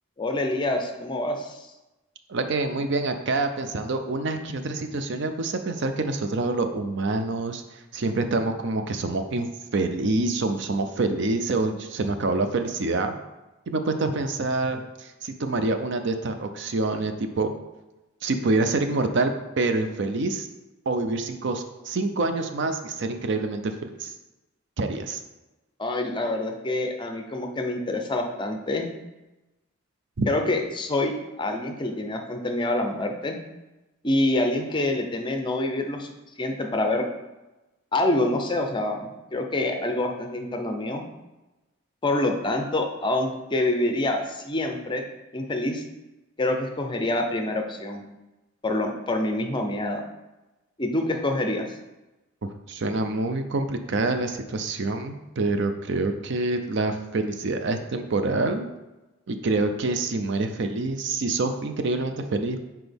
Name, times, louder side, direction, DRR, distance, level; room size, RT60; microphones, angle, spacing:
voice 1, 0.2-1.7 25.8-28.9 30.3-33.4 34.0-36.1 36.4-37.1 37.9-41.0 42.0-45.0 45.3-45.8 46.4-48.0 48.6-50.0 50.8-51.7, left 2 dB, 20° left, 4 dB, 0.5 m, -26 dB
voice 2, 2.3-7.6 7.9-9.5 9.7-13.1 13.7-17.5 18.2-19.3 19.6-20.5 20.9-24.1 24.8-25.2 30.2-30.3 52.7-58.7 59.3-62.6, right 3 dB, 55° right, 7 dB, 0.5 m, -26 dB
6.0 x 4.5 x 3.4 m, 1.0 s
head